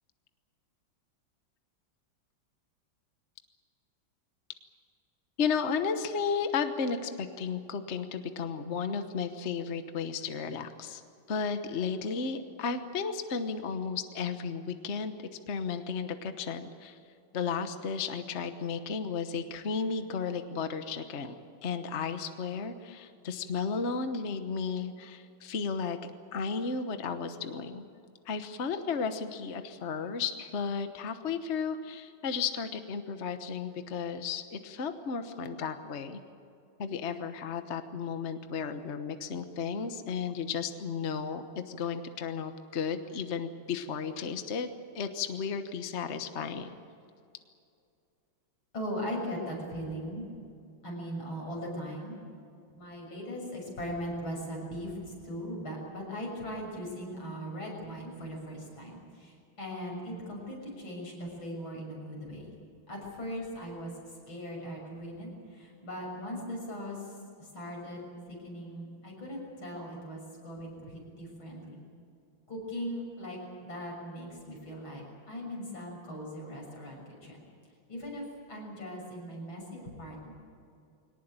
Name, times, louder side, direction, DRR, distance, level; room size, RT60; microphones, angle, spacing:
voice 1, 5.4-11.0 11.3-15.1 15.5-17.0 17.3-26.0 26.3-27.8 28.3-36.2 36.8-44.7 44.9-46.7, left 5 dB, 40° left, 8 dB, 1.2 m, -34 dB
voice 2, 48.7-50.3 50.8-52.2 52.8-62.5 62.9-63.9 64.3-71.8 72.5-77.4 77.9-80.3, equal, 85° left, -1 dB, 7.4 m, -39 dB
22.5 x 18.5 x 8.9 m, 2.5 s
omnidirectional pair, 2.1 m